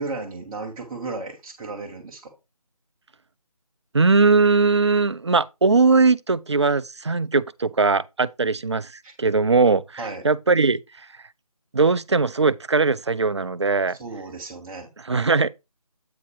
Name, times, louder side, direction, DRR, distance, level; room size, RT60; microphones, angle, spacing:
voice 1, 0.0-2.3 9.0-9.1 10.0-10.2 13.9-14.9, right 3 dB, 5° right, 1.0 m, -34 dB
voice 2, 3.9-8.9 9.2-10.8 11.7-14.0 15.1-15.5, right 4 dB, 50° right, 0.5 m, -20 dB
8.7 x 4.2 x 4.7 m
figure-of-eight pair, 160°, 19 cm